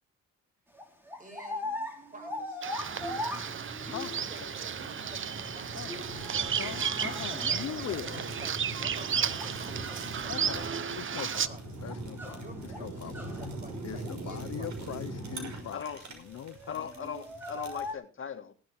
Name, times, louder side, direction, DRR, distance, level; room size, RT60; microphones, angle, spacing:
sound 1, 0.7-4.3 5.9-8.3 8.9-10.8 11.1-13.5 13.8-14.5 14.8-14.9 15.1-15.8 16.1-17.9, left 1 dB, 5° right, 4.5 m, -41 dB
voice 1, 1.2-1.7 2.0-2.7 3.7-6.6 6.9-11.9 12.3-15.0, right 2 dB, 25° right, 7.0 m, -51 dB
Bird vocalization bird call bird song, 2.6-11.5, right 7 dB, 40° right, 0.9 m, -33 dB
Fire, 2.8-17.9, right 2 dB, 65° right, 6.0 m, -42 dB
voice 2, 6.4-8.2 10.3-10.7 11.0-11.5 11.8-12.4 12.8-13.1 13.8-15.8 16.2-16.9, left 11 dB, 60° left, 0.9 m, -40 dB
voice 3, 15.7-16.1 16.7-18.5, left 7 dB, 45° left, 1.8 m, -39 dB
17.5 x 12.5 x 3.6 m
cardioid pair, 90°, 30 cm